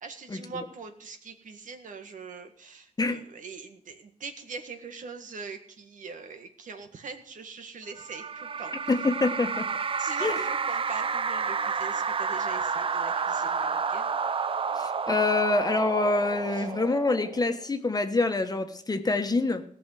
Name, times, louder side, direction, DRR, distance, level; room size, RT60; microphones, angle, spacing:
voice 1, 0.0-8.7 10.0-14.2 16.5-16.7, right 5 dB, 75° right, 6 dB, 1.7 m, -42 dB
sound 1, 8.0-17.6, right 5 dB, 45° right, 0.6 m, -30 dB
voice 2, 8.9-9.7 10.2-10.4 14.8-19.6, left 3 dB, 30° left, 7 dB, 1.3 m, -26 dB
18.0 x 6.2 x 7.7 m, 0.63 s
wide cardioid pair, 105°, 13 cm